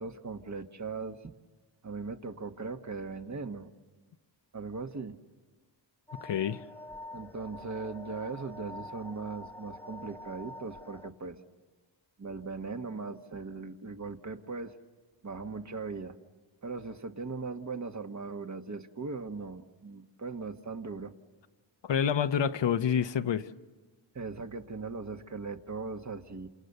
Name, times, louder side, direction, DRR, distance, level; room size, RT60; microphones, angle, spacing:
voice 1, 0.0-1.3 1.8-3.7 4.5-5.2 7.1-11.4 12.2-14.7 15.2-16.2 16.6-21.1 24.1-26.5, right 4 dB, 35° right, 1.5 m, -39 dB
sound 1, 6.1-11.1, left 1 dB, 5° left, 1.5 m, -46 dB
voice 2, 6.2-6.6 21.8-23.5, left 8 dB, 65° left, 0.9 m, -28 dB
28.5 x 27.5 x 6.8 m
cardioid pair, 75°, 47 cm